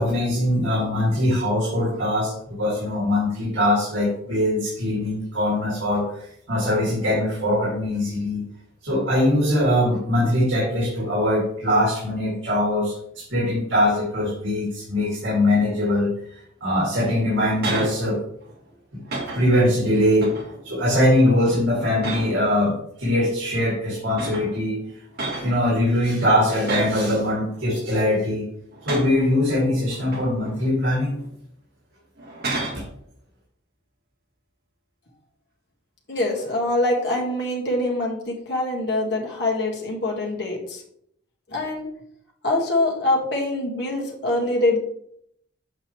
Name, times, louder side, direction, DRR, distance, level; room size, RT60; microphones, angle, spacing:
voice 1, 0.0-8.4 8.8-18.2 18.9-19.0 19.3-20.3 20.6-24.8 25.2-28.5 28.8-31.2 32.7-32.8, left 1 dB, 80° right, -6 dB, 2.5 m, -22 dB
sound 1, 17.1-18.0 18.4-18.7 19.0-19.6 20.2-20.6 21.0-21.3 22.0-22.6 23.5-23.6 24.1-24.6 25.1-25.6 26.6-27.1 27.5-28.1 28.7-29.3 29.9-30.7 31.1-31.3 32.2-32.9 36.3-36.7, right 2 dB, 55° right, 1.8 m, -32 dB
voice 2, 36.1-40.8 41.5-41.9 42.4-44.8, left 2 dB, 60° left, -2 dB, 1.9 m, -24 dB
7.8 x 5.4 x 3.2 m, 0.69 s
head